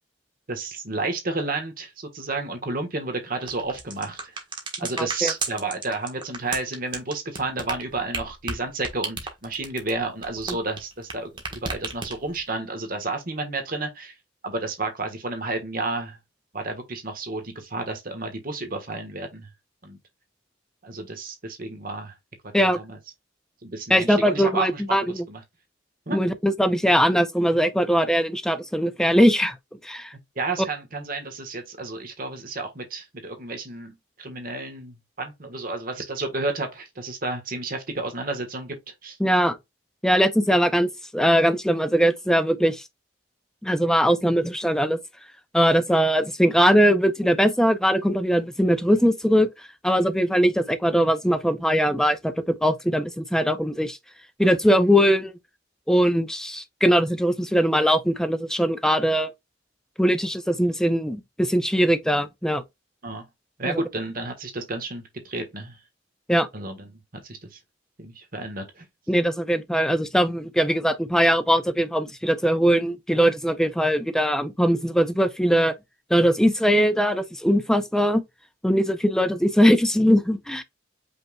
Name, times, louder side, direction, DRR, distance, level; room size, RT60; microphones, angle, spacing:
voice 1, 0.5-4.3 4.8-14.1 14.4-16.2 16.5-19.5 19.8-20.0 20.8-22.1 22.6-23.0 23.6-25.0 25.3-25.4 26.1-26.2 30.4-39.2 63.0-63.2 63.6-65.8 66.5-67.6 68.0-68.8, right 3 dB, 45° right, 1.4 m, -31 dB
sound 1, 3.4-11.1 11.4-12.4, right 3 dB, 25° right, 1.4 m, -33 dB
voice 2, 5.0-5.3 10.5-10.6 22.5-22.8 23.9-25.0 26.1-29.6 29.8-30.1 39.2-39.6 40.0-42.8 43.6-45.0 45.5-54.0 54.4-55.3 55.9-59.3 60.0-62.6 63.7-63.8 66.3-66.5 69.1-75.7 76.1-78.2 78.6-80.6, equal, 5° left, 0.6 m, -21 dB
5.4 x 4.3 x 2.3 m
head